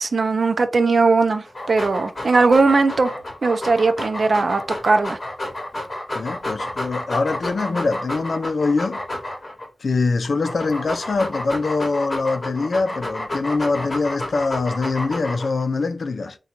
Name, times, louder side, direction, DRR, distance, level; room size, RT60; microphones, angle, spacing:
voice 1, 0.0-3.1 3.4-5.2, right 3 dB, 65° right, 0.5 m, -19 dB
Dog, 1.4-9.7 10.2-15.6, left 1 dB, 45° left, 0.9 m, -30 dB
voice 2, 6.1-9.0 9.8-16.4, left 3 dB, 75° left, 0.4 m, -23 dB
3.8 x 2.2 x 2.9 m
wide cardioid pair, 95°, 0 cm